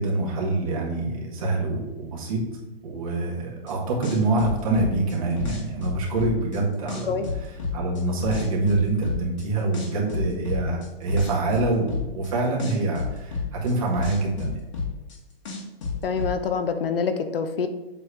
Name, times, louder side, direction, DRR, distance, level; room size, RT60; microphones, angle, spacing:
voice 1, 0.0-2.4 2.8-7.2 7.7-14.6, right 2 dB, 35° right, -3 dB, 1.7 m, -25 dB
sound 1, 3.7-3.8 4.0-6.6 6.9-9.4 9.7-12.3 12.6-15.2 15.4-16.3, left 4 dB, 30° left, 1.4 m, -30 dB
voice 2, 16.0-17.7, left 5 dB, 65° left, 9 dB, 0.8 m, -26 dB
7.7 x 3.3 x 5.7 m, 1.1 s
hypercardioid pair, 180°, 30 cm